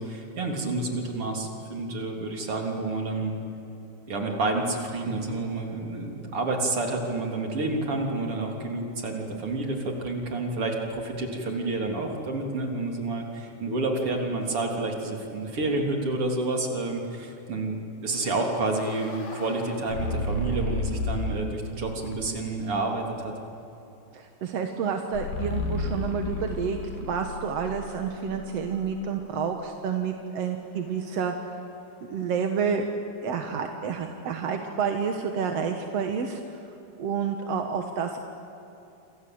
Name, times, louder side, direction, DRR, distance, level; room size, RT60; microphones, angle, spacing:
voice 1, 0.0-3.3 4.1-23.3, right 2 dB, 40° right, 1 dB, 4.0 m, -29 dB
sound 1, 18.2-21.6 22.0-22.6 25.1-29.2, left 2 dB, 85° left, 5.3 m, -33 dB
voice 2, 24.1-31.3 32.1-32.9 33.2-36.4 37.0-38.2, right 6 dB, 55° right, 4 dB, 1.9 m, -29 dB
28.0 x 26.5 x 7.9 m, 2.9 s
omnidirectional pair, 4.3 m